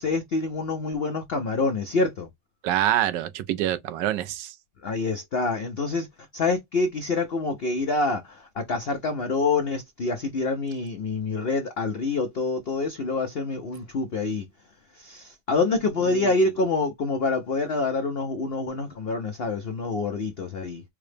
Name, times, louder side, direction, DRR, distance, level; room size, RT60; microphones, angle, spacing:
voice 1, 0.0-2.3 4.8-6.1 6.3-14.5 14.9-20.8, left 3 dB, 75° left, 0.5 m, -26 dB
voice 2, 2.6-4.5 16.1-16.3, right 12 dB, 90° right, 1.2 m, -26 dB
4.7 x 2.0 x 3.2 m
omnidirectional pair, 1.8 m